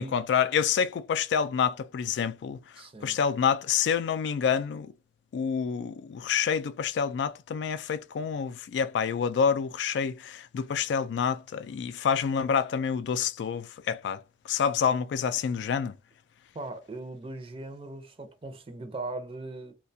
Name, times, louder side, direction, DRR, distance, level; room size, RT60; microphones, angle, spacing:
voice 1, 0.0-2.6 3.0-4.9 5.3-16.0, left 7 dB, 80° left, 0.3 m, -28 dB
voice 2, 2.7-3.2 16.5-19.7, right 2 dB, 30° right, 0.5 m, -39 dB
2.3 x 2.2 x 2.6 m
head